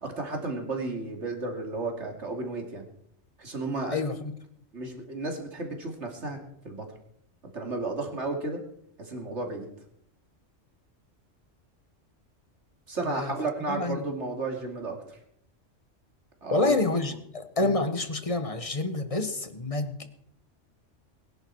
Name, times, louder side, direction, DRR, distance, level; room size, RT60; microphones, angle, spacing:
voice 1, 0.0-2.8 3.4-4.0 4.7-6.4 6.6-6.9 7.5-8.6 9.0-9.7 12.9-15.2 16.4-16.8 17.6-17.7, right 3 dB, 65° right, 2 dB, 3.0 m, -33 dB
voice 2, 3.9-4.3 13.0-13.3 13.7-14.0 16.5-20.1, left 3 dB, 30° left, 8 dB, 1.4 m, -28 dB
22.0 x 11.0 x 4.8 m, 0.70 s
omnidirectional pair, 1.3 m